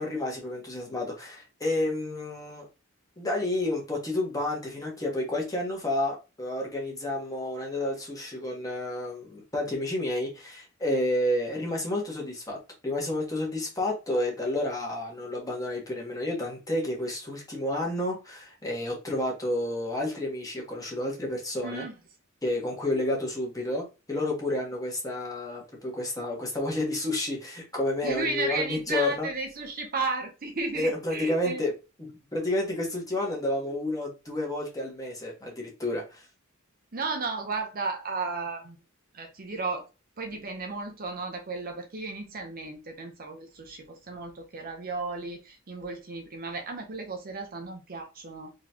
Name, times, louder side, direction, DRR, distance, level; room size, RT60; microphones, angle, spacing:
voice 1, 0.0-2.7 3.2-12.6 12.8-21.9 22.4-29.3 30.7-31.7 32.0-36.2, left 1 dB, 15° left, 1.4 m, -30 dB
voice 2, 21.6-21.9 28.0-31.6 36.9-38.8 39.1-39.8 40.2-48.5, right 3 dB, 45° right, 0.7 m, -34 dB
3.9 x 3.1 x 2.8 m
head